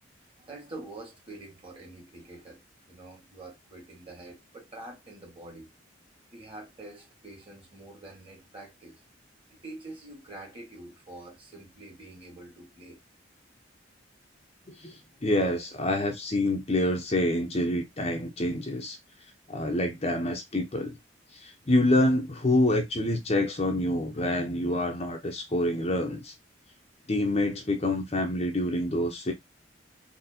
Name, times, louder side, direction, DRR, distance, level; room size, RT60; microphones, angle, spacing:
voice 1, 0.4-2.6 2.9-5.7 6.3-9.0 9.6-13.0, right 2 dB, 30° right, 2.1 m, -46 dB
voice 2, 14.8-19.0 19.5-21.0 21.3-26.3 27.1-29.3, left 1 dB, 30° left, 0.8 m, -27 dB
4.1 x 2.9 x 2.8 m
head